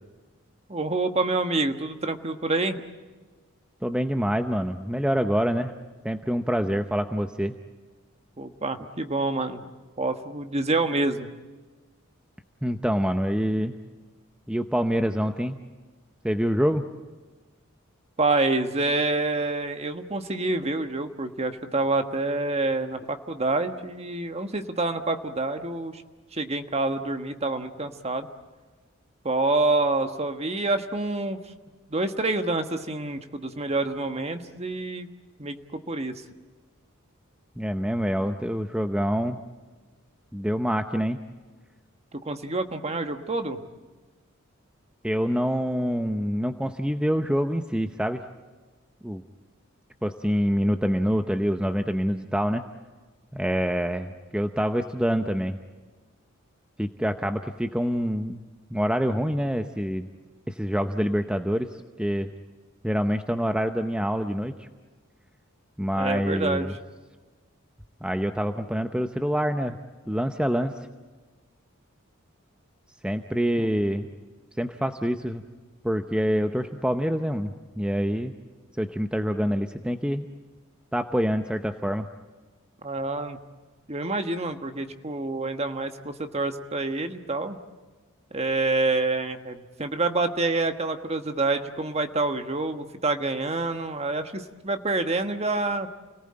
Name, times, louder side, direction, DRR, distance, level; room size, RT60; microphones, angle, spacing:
voice 1, 0.7-2.8 8.4-9.6 10.0-11.3 18.2-26.0 26.3-28.3 29.2-31.4 31.9-35.1 35.4-36.1 42.1-43.6 65.9-66.7 73.6-73.7 82.8-83.4 83.9-87.6 88.3-95.9, right 2 dB, 30° right, 7 dB, 1.4 m, -27 dB
voice 2, 3.8-5.7 6.0-7.5 12.6-13.8 14.5-15.6 16.2-16.8 37.6-39.4 40.3-41.2 45.0-48.2 49.0-49.2 50.0-52.6 53.3-55.6 56.8-58.4 58.7-60.1 60.5-62.3 62.8-64.7 65.8-66.7 68.0-69.8 70.1-70.7 73.0-74.1 74.6-75.4 75.8-78.3 78.8-80.3 80.9-82.1, equal, 5° right, 7 dB, 0.8 m, -26 dB
29.5 x 18.5 x 8.8 m, 1.3 s
head